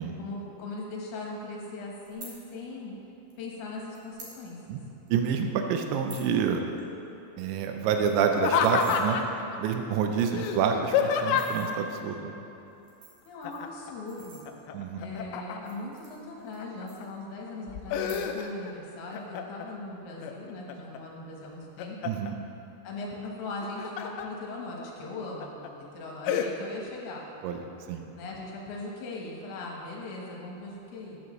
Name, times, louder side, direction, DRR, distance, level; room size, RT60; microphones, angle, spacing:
voice 1, 0.2-2.9 3.4-4.8 13.2-14.4 15.0-22.1 22.8-27.3 28.2-31.2, left 2 dB, 70° left, -2 dB, 3.0 m, -39 dB
sound 1, 2.0-2.3 3.3-3.4 3.9-4.4 4.7-4.8 5.1-5.3 5.8-6.3 6.7-6.8 7.1-7.2 7.5-7.6 7.9-9.0 9.7-9.8 10.1-10.7 11.2-11.7 12.7-14.9 15.5-16.6 16.9-17.5 17.9-18.5 18.8-19.2, right 4 dB, 55° right, 2.4 m, -50 dB
voice 2, 5.1-6.6 7.4-9.2 9.6-12.3 14.7-15.0 22.1-22.4 27.4-27.6 27.9-28.0, right 7 dB, 90° right, 5 dB, 3.0 m, -27 dB
Laughter, 8.3-9.4 10.3-11.7 13.4-13.9 14.2-15.8 16.4-17.0 17.5-18.7 19.1-19.7 20.2-21.0 21.4-22.3 23.5-24.3 24.8-24.9 25.4-25.7 26.3-26.5, left 7 dB, 90° left, 2.1 m, -29 dB
13.5 x 8.5 x 3.1 m, 2.9 s
omnidirectional pair, 5.1 m